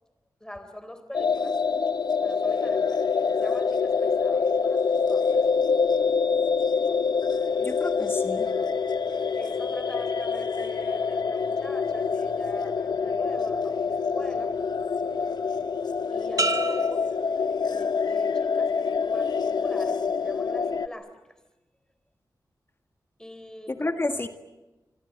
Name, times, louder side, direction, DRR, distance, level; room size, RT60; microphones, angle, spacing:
voice 1, 0.4-1.6 2.2-3.0 3.3-5.4 9.3-14.5 16.1-17.0 17.7-21.1 23.2-23.9, equal, 10° left, 10 dB, 3.8 m, -42 dB
sound 1, 1.1-20.9, left 5 dB, 75° left, 1.0 m, -26 dB
voice 2, 7.6-8.5 23.8-24.3, left 2 dB, 30° left, 6 dB, 1.7 m, -29 dB
sound 2, 16.4-18.2 18.7-19.1, right 3 dB, 55° right, 1.6 m, -32 dB
26.0 x 25.5 x 7.8 m, 1.0 s
wide cardioid pair, 85°, 7 cm